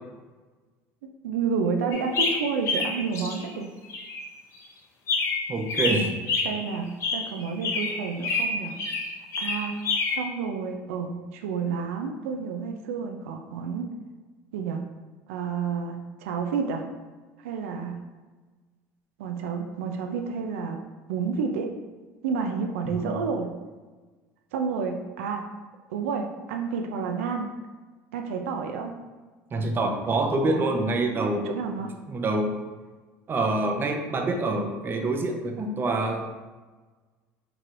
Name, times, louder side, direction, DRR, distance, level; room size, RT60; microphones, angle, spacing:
voice 1, 1.0-3.7 5.9-6.2 6.4-8.8 9.4-9.8 10.1-13.9 14.5-14.8 15.3-16.8 17.4-18.0 19.2-20.8 21.1-21.7 22.2-23.5 24.5-25.5 25.9-27.5 28.1-28.9 30.4-30.6 31.4-31.9, right 5 dB, 90° right, 4 dB, 0.3 m, -30 dB
sound 1, 1.9-3.5 3.9-4.3 5.1-10.2, left 3 dB, 45° left, 0.7 m, -28 dB
voice 2, 5.5-6.1 22.9-23.2 29.5-31.5 32.1-32.6 33.3-36.4, right 2 dB, 30° right, 3 dB, 0.6 m, -26 dB
4.6 x 3.0 x 2.5 m, 1.3 s
supercardioid pair, 95°, 7 cm